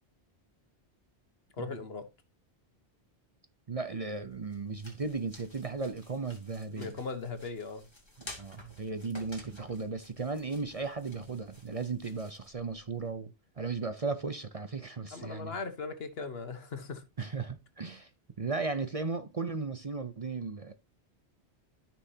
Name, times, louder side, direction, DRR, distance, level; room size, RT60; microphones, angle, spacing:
voice 1, 1.6-2.1 6.8-7.9 15.1-17.0, left 4 dB, 65° left, 1.5 m, -38 dB
voice 2, 3.7-7.0 8.4-15.6 17.2-18.1 18.4-20.7, right 4 dB, 40° right, 0.7 m, -36 dB
sound 1, 4.1-13.1, left 1 dB, 25° left, 2.7 m, -53 dB
13.5 x 6.0 x 2.8 m
omnidirectional pair, 1.1 m